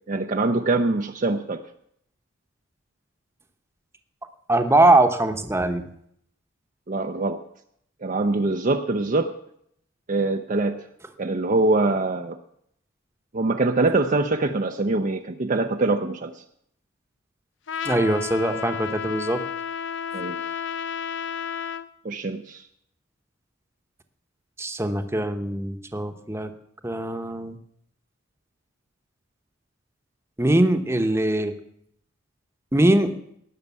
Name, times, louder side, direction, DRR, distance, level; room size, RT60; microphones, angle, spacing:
voice 1, 0.1-1.6 6.9-7.4 8.0-9.3 10.1-10.8 11.2-12.4 13.3-16.4 20.1-20.4 22.0-22.6, right 2 dB, 40° right, 6 dB, 0.6 m, -23 dB
voice 2, 4.5-5.9 17.8-19.4 24.6-26.5 26.8-27.6 30.4-31.5 32.7-33.1, right 1 dB, 15° right, 8 dB, 0.9 m, -21 dB
Trumpet, 17.7-21.9, left 8 dB, 60° left, 0.6 m, -31 dB
18.0 x 6.5 x 8.2 m, 0.71 s
head